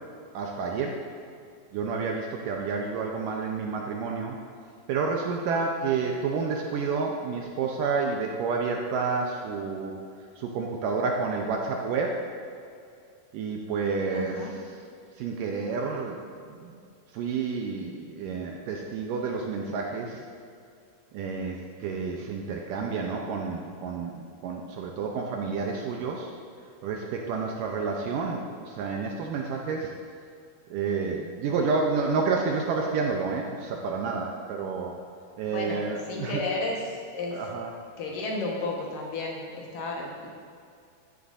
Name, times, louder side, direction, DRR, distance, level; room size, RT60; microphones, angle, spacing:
voice 1, 0.3-1.0 1.7-4.4 4.9-9.9 10.4-12.2 13.3-14.6 15.2-16.2 16.5-16.8 17.1-20.2 21.1-26.3 26.8-29.9 30.7-35.0 35.4-36.4 37.3-37.7, right 4 dB, 80° right, 0 dB, 2.1 m, -30 dB
voice 2, 14.1-14.5 35.5-37.4 38.0-40.3, left 2 dB, 70° left, -2 dB, 2.7 m, -33 dB
13.5 x 10.5 x 2.6 m, 2.4 s
omnidirectional pair, 4.4 m